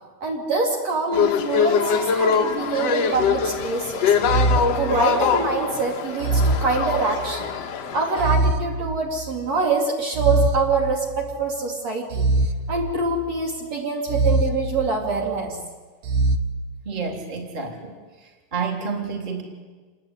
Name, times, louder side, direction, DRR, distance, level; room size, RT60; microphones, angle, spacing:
voice 1, 0.2-4.1 4.6-7.5 7.9-12.3 12.7-15.6, right 3 dB, 45° right, 0 dB, 3.7 m, -25 dB
sound 1, 1.1-8.3, left 6 dB, 55° left, 1.9 m, -23 dB
sound 2, 3.1-3.6 4.2-5.5 6.2-7.5 8.2-9.5 10.1-11.4 12.1-13.4 14.1-15.4 16.0-16.4, right 2 dB, 65° right, 1.8 m, -24 dB
voice 2, 16.8-18.0 18.5-19.4, right 5 dB, 10° right, 1 dB, 3.1 m, -29 dB
27.5 x 21.0 x 9.8 m, 1.4 s
omnidirectional pair, 4.7 m